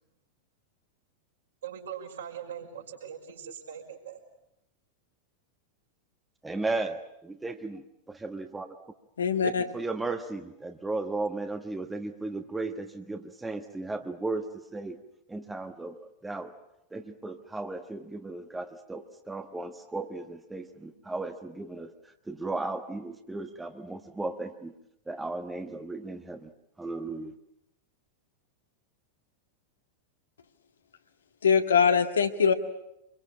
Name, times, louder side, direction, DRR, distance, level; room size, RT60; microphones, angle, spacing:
voice 1, 1.6-4.2, right 8 dB, 65° right, 1 dB, 5.5 m, -41 dB
voice 2, 6.4-8.8 9.4-15.0 15.3-16.5 16.9-24.7 25.1-26.5 26.8-27.3, right 2 dB, 10° right, 6 dB, 1.4 m, -35 dB
voice 3, 9.2-9.7 31.4-32.5, left 6 dB, 70° left, 7 dB, 1.8 m, -22 dB
25.5 x 23.5 x 8.7 m, 0.83 s
figure-of-eight pair, 90°, 0 cm